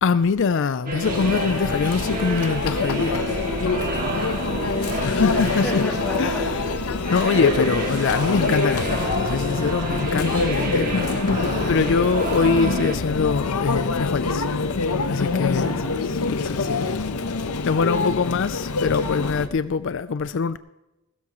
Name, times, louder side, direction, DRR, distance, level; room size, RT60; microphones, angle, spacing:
voice 1, 0.0-3.2 5.0-5.8 6.2-6.6 7.1-14.5 15.1-15.8 16.0-16.9 17.6-20.6, left 5 dB, 55° left, 0.4 m, -23 dB
sound 1, 0.9-13.0, right 2 dB, 40° right, 2.2 m, -30 dB
Conversation / Chatter / Crowd, 1.0-19.5, left 3 dB, 85° left, 0.9 m, -25 dB
voice 2, 3.4-5.0 5.6-6.1 15.2-16.3 17.8-18.5 19.1-19.2, equal, 10° left, 5.0 m, -37 dB
20.5 x 13.0 x 3.0 m
head